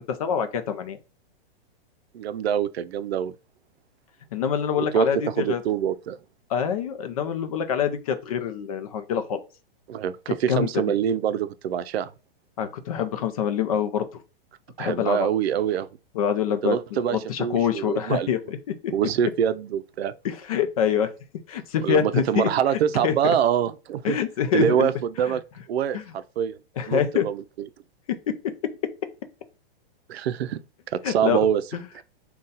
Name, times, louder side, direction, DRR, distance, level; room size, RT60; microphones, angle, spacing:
voice 1, 0.1-1.0 4.3-5.6 6.5-9.4 10.5-10.7 12.6-14.1 14.8-15.3 16.1-18.9 20.2-21.1 21.5-22.5 22.9-23.4 24.0-24.9 25.3-25.4 25.9-26.0 26.8-27.3 28.3-28.4 31.0-31.5 31.7-32.0, left 8 dB, 35° left, 0.4 m, -25 dB
voice 2, 2.1-3.3 4.8-5.1 5.4-6.2 9.9-12.1 14.8-15.9 16.6-18.3 18.9-20.1 21.8-24.2 24.5-25.4 25.7-26.6 26.9-27.4 30.1-30.6 30.9-31.6 31.9-32.0, right 9 dB, 85° right, 0.5 m, -25 dB
3.9 x 2.3 x 3.9 m
hypercardioid pair, 160°, 30 cm